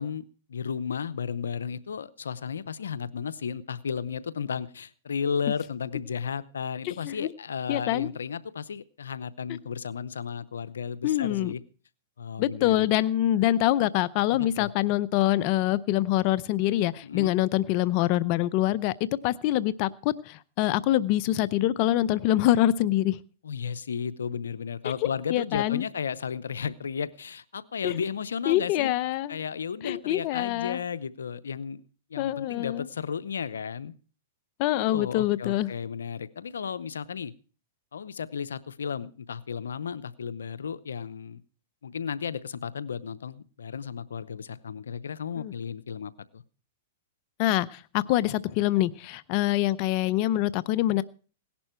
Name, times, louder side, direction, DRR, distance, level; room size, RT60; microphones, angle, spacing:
voice 1, 0.0-11.6 12.2-12.9 14.3-14.7 17.0-17.3 23.4-28.9 29.3-31.8 32.1-33.9 34.7-37.3 37.9-41.4 41.8-46.4, left 6 dB, 90° left, 17 dB, 0.7 m, -34 dB
voice 2, 6.8-7.3 7.7-8.1 11.0-11.5 12.4-23.2 25.3-25.9 27.8-27.9 28.5-29.4 29.8-30.8 32.2-32.9 34.6-35.7 45.4-45.5 47.4-51.0, left 14 dB, 45° left, 17 dB, 0.6 m, -25 dB
17.5 x 11.5 x 4.4 m, 0.39 s
hypercardioid pair, 130°, 0 cm